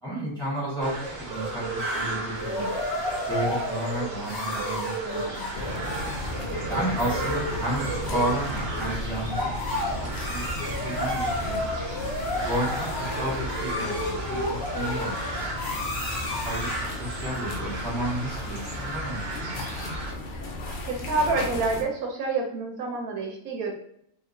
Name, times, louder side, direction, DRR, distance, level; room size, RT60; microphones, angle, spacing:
voice 1, 0.0-3.0 3.3-5.5 6.7-11.6 12.3-15.4 16.3-19.6, right 1 dB, 5° left, -8 dB, 1.3 m, -32 dB
sound 1, 0.8-20.1, right 2 dB, 60° right, 0.7 m, -35 dB
sound 2, 1.8-17.0, left 1 dB, 50° left, 1.1 m, -32 dB
sound 3, 5.5-21.8, left 1 dB, 80° left, 0.4 m, -35 dB
voice 2, 20.8-23.7, right 3 dB, 75° right, 1 dB, 1.0 m, -28 dB
2.8 x 2.7 x 2.5 m, 0.70 s
omnidirectional pair, 1.6 m